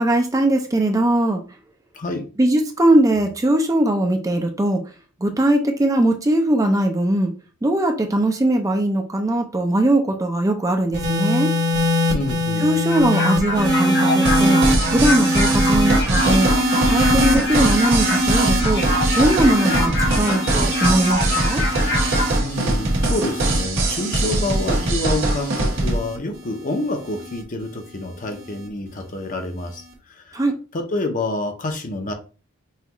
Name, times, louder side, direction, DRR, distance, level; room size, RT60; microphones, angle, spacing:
voice 1, 0.0-1.4 2.4-4.8 5.2-7.3 7.6-11.5 12.6-14.6 14.9-16.5 16.9-18.8 19.1-21.6 30.3-30.5, right 1 dB, 15° right, 4 dB, 0.4 m, -20 dB
sound 1, 10.9-27.4 28.3-28.7, equal, 80° right, 1.5 m, -23 dB
voice 2, 12.1-12.7 22.4-29.8 30.3-30.4 30.7-32.1, left 2 dB, 35° left, 5 dB, 0.7 m, -27 dB
sound 2, 12.9-22.3, left 2 dB, 55° left, 1.5 m, -26 dB
sound 3, 14.3-26.0, right 2 dB, 60° right, 1.5 m, -22 dB
5.6 x 2.4 x 3.0 m, 0.36 s
head